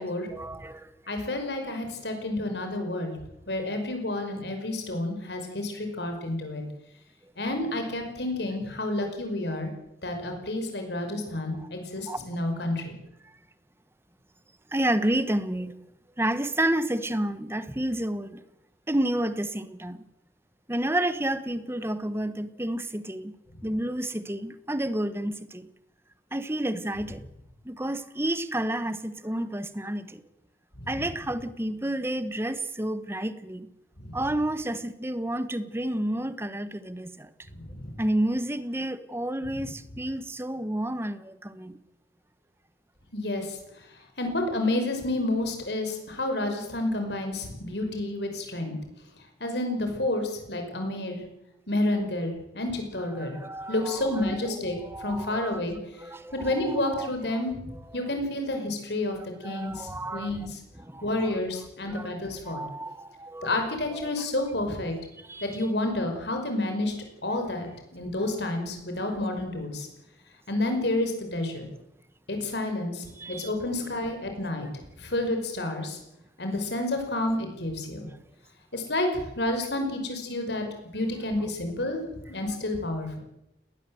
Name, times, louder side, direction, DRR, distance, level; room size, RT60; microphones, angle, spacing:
voice 1, 0.0-0.9 11.6-11.7 12.1-12.2 14.7-15.7 16.2-18.4 18.9-20.0 20.7-23.3 23.6-25.7 26.3-27.2 27.6-30.2 30.9-33.7 34.1-37.3 38.0-41.8 53.2-55.6 56.0-57.1 57.3-57.4 59.4-60.3 60.9-61.4 61.9-62.1 62.5-63.5 63.9-64.1 65.3-65.5 73.2-73.5, right 1 dB, 15° right, 13 dB, 1.1 m, -30 dB
voice 2, 1.1-3.1 3.5-6.6 7.4-9.7 10.0-13.0 30.8-30.9 34.0-34.1 37.5-37.9 39.5-39.7 43.1-43.6 44.2-48.7 49.4-51.2 51.7-53.3 53.7-55.8 56.3-57.6 57.9-59.2 59.4-60.6 61.0-62.6 63.4-64.9 65.4-66.9 67.2-69.9 70.5-71.7 72.3-74.7 75.0-76.0 76.4-78.1 78.7-80.7 80.9-82.0 82.3-83.2, left 1 dB, 60° left, 5 dB, 5.6 m, -30 dB
20.0 x 19.5 x 7.9 m, 0.87 s
head